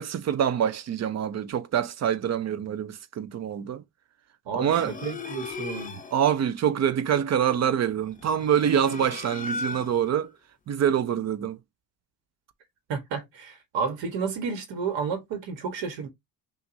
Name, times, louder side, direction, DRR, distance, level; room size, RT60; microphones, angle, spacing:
voice 1, 0.0-3.8 4.5-4.9 6.1-10.3 10.7-11.6, right 9 dB, 40° right, 0.5 m, -25 dB
voice 2, 4.4-6.0 12.9-16.1, right 5 dB, 80° right, 1.3 m, -31 dB
sound 1, 4.7-6.2 8.1-10.2, left 3 dB, 20° left, 0.5 m, -37 dB
5.8 x 2.5 x 2.6 m
cardioid pair, 135°, 44 cm